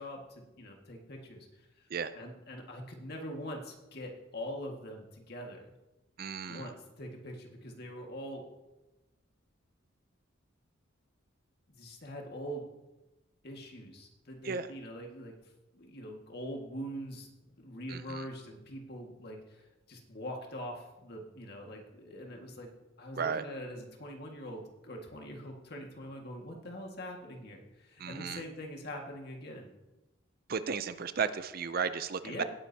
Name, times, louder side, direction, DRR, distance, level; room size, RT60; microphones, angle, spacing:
voice 1, 0.0-1.5 1.8-1.9 2.1-5.7 6.5-8.5 11.7-12.7 13.4-15.4 15.7-22.7 23.0-29.7 32.2-32.4, equal, 50° left, 1 dB, 1.8 m, -43 dB
voice 2, 6.2-6.7 14.4-14.7 17.9-18.2 23.2-23.4 28.0-28.4 30.5-32.4, right 6 dB, 45° right, 13 dB, 0.5 m, -34 dB
17.5 x 9.8 x 2.8 m, 1.0 s
head